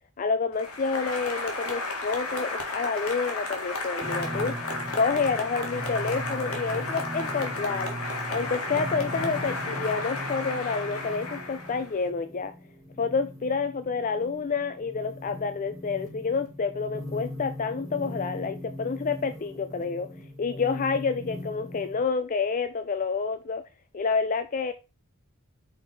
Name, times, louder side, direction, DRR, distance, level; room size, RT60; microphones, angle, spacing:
voice 1, 0.2-4.5 4.9-7.9 8.3-12.5 13.0-20.1 20.4-23.6 23.9-24.7, left 5 dB, 35° left, 0.4 m, -28 dB
Applause, 0.5-12.0, left 2 dB, 75° left, 1.9 m, -33 dB
sound 1, 4.0-22.0, equal, 15° left, 2.2 m, -39 dB
6.0 x 4.5 x 4.7 m
head